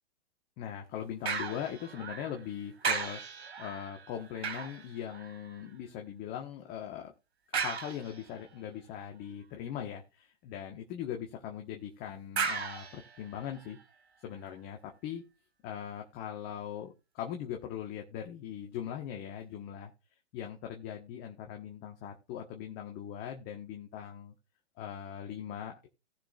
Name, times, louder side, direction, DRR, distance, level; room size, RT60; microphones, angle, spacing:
voice 1, 0.6-3.2 3.6-7.1 7.5-13.8 14.2-15.2 15.6-19.9 20.3-24.3 24.8-25.9, left 9 dB, 30° left, 3 dB, 1.3 m, -40 dB
sound 1, 1.3-2.5 2.8-5.7 7.5-8.5 12.4-13.8 14.4-14.5, right 6 dB, 75° right, 2.3 m, -36 dB
18.0 x 6.2 x 2.4 m, 0.30 s
hypercardioid pair, 130°, 32 cm